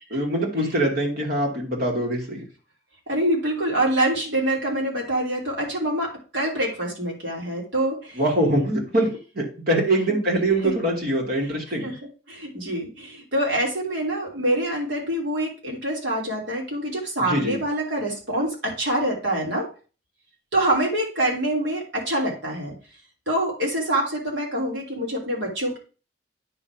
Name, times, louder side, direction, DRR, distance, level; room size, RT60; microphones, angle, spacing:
voice 1, 0.1-2.4 8.2-9.1 9.3-11.9 17.3-17.6, right 1 dB, 55° right, 0 dB, 2.7 m, -23 dB
voice 2, 3.1-8.2 10.6-10.7 11.8-12.0 12.3-19.7 20.5-22.7 23.3-25.8, right 1 dB, 75° right, -1 dB, 3.1 m, -25 dB
9.4 x 3.7 x 5.9 m, 0.35 s
head